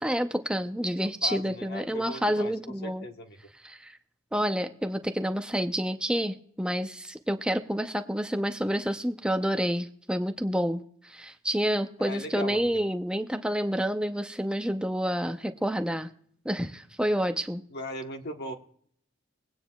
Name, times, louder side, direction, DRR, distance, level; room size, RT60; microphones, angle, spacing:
voice 1, 0.0-3.0 3.6-4.0 4.3-16.1 16.4-17.6, equal, 5° right, 7 dB, 0.6 m, -29 dB
voice 2, 1.2-3.4 12.0-12.7 17.7-18.5, left 1 dB, 50° left, 4 dB, 1.2 m, -38 dB
21.5 x 9.2 x 2.3 m, 0.63 s
head